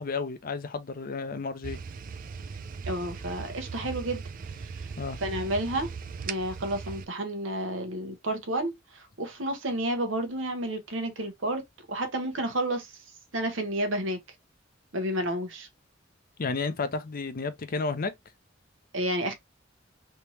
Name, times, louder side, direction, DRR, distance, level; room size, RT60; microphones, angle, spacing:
voice 1, 0.0-1.8 5.0-5.2 16.4-18.1, left 4 dB, 50° left, 0.6 m, -32 dB
sound 1, 1.6-7.1, right 5 dB, 45° right, 0.4 m, -39 dB
voice 2, 2.9-4.2 4.6-4.7 5.2-5.9 6.3-11.6 11.9-12.9 13.3-14.2 14.9-15.7 18.9-19.3, right 1 dB, 80° right, 1.1 m, -30 dB
3.4 x 2.9 x 2.9 m
head